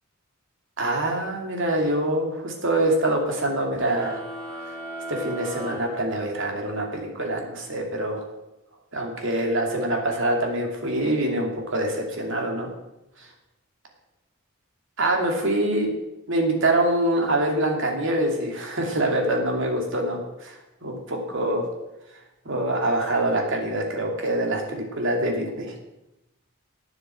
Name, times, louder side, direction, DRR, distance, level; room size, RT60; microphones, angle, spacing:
voice 1, 0.8-4.2 5.1-8.2 8.9-12.7 15.0-15.9 16.3-20.6 20.8-21.7 22.4-25.7, right 1 dB, 65° right, 1 dB, 2.5 m, -25 dB
sound 1, 3.8-6.7, right 1 dB, 20° right, 3.6 m, -37 dB
9.5 x 7.8 x 7.6 m, 0.93 s
head